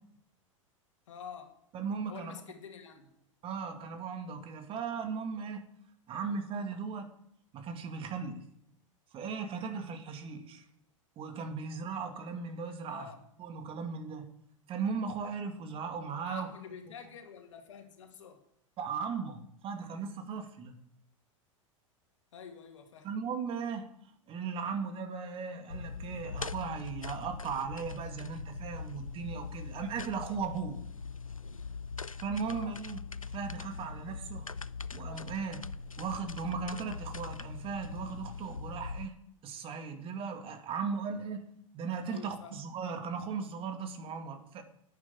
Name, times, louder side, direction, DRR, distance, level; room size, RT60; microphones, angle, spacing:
voice 1, 1.1-1.6 2.1-3.1 12.9-13.2 16.2-18.4 22.3-23.1 32.4-32.8 42.1-42.5, left 7 dB, 65° left, 2.5 m, -47 dB
voice 2, 1.7-2.4 3.4-5.7 6.1-7.1 7.5-8.4 9.1-10.6 11.2-13.1 13.4-14.3 14.7-16.5 18.8-20.8 23.0-23.9 24.3-30.8 32.2-33.0 33.3-34.5 34.9-35.7 36.0-39.1 39.4-41.5 41.7-44.6, right 5 dB, 30° right, 2.1 m, -37 dB
sound 1, 25.7-39.0, left 5 dB, 90° left, 0.4 m, -42 dB
11.0 x 9.4 x 8.6 m
figure-of-eight pair, 90°, 17 cm